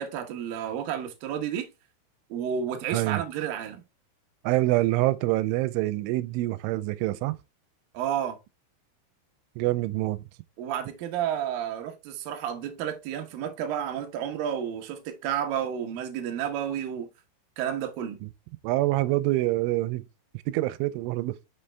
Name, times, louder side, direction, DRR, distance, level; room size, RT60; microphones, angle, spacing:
voice 1, 0.0-1.7 2.3-3.8 7.9-8.4 10.6-17.1 17.6-18.2, right 9 dB, 70° right, 2.2 m, -31 dB
voice 2, 2.9-3.2 4.4-7.4 9.6-10.2 18.6-20.1 20.5-21.4, right 18 dB, 90° right, 3.0 m, -26 dB
6.4 x 5.7 x 3.3 m
omnidirectional pair, 5.4 m